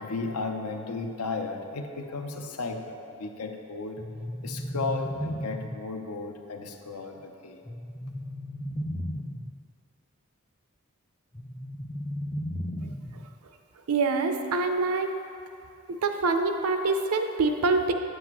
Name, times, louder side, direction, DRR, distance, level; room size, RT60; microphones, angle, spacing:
voice 1, 0.0-4.0 4.4-7.6, left 3 dB, 85° left, 5 dB, 0.6 m, -34 dB
sound 1, 4.0-6.0 7.7-9.5 11.3-13.3, equal, 15° left, 0.6 m, -35 dB
voice 2, 13.9-15.1 15.9-17.9, right 3 dB, 85° right, 6 dB, 0.6 m, -25 dB
8.3 x 7.8 x 3.0 m, 2.5 s
head